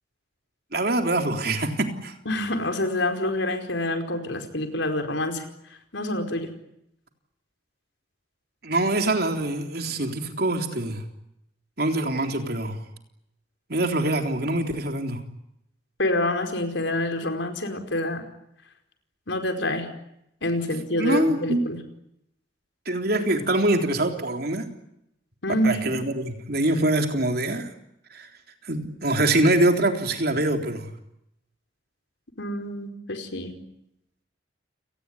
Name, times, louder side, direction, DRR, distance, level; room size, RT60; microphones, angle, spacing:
voice 1, 0.7-2.1 8.6-11.0 11.8-12.8 13.7-15.2 21.0-21.6 22.9-24.7 25.6-27.7 28.1-28.3 28.6-30.9, right 1 dB, 55° right, 5 dB, 3.6 m, -24 dB
voice 2, 2.3-5.4 5.9-6.5 16.0-18.2 19.3-19.9 20.4-21.8 25.4-26.0 32.4-33.6, left 1 dB, 80° left, 6 dB, 4.8 m, -27 dB
29.5 x 19.0 x 9.8 m, 0.82 s
head